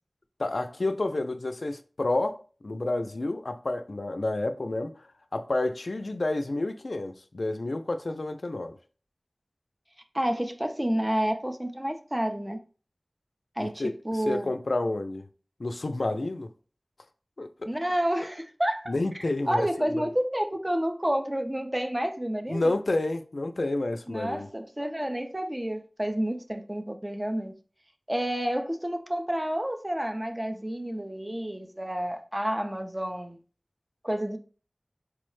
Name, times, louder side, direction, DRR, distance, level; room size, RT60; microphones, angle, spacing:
voice 1, 0.4-2.4 2.6-4.9 5.3-8.8 13.6-15.3 15.6-16.5 17.4-17.5 18.9-20.1 22.5-24.5, left 2 dB, 85° left, 0.3 m, -29 dB
voice 2, 10.1-12.6 13.6-14.5 17.6-22.7 24.1-27.5 28.1-33.4 34.0-34.4, equal, 20° right, 0.5 m, -30 dB
4.6 x 2.0 x 3.1 m
wide cardioid pair, 45°, 0 cm